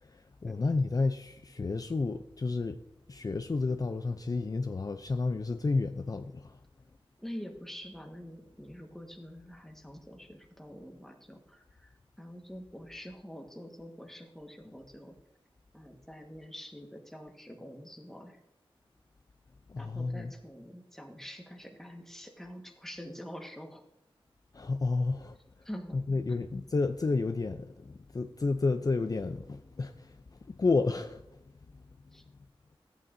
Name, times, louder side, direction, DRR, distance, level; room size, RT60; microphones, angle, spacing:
voice 1, 0.0-2.8 3.1-6.6 19.7-20.3 24.5-25.4 25.9-31.2, left 3 dB, 40° left, 0.4 m, -31 dB
voice 2, 7.2-15.2 15.7-18.4 19.8-23.8 25.6-26.0 32.1-32.2, equal, 5° left, 1.4 m, -46 dB
14.0 x 8.7 x 2.6 m
wide cardioid pair, 80°, 10 cm